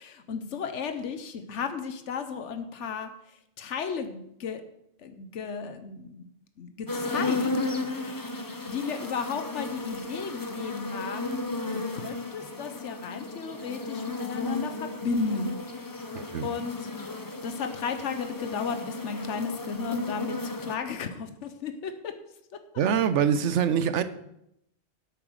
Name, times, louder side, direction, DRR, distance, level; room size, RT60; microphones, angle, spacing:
voice 1, 0.0-4.6 5.0-6.3 6.6-7.5 8.7-15.6 16.4-16.9 17.4-22.1 22.5-22.6, left 5 dB, 85° left, 8 dB, 1.2 m, -34 dB
sound 1, 6.9-20.8, left 2 dB, 20° left, 0.7 m, -34 dB
voice 2, 16.1-16.5 22.8-24.0, right 8 dB, 85° right, 12 dB, 1.0 m, -24 dB
8.9 x 8.2 x 6.3 m, 0.79 s
omnidirectional pair, 1.2 m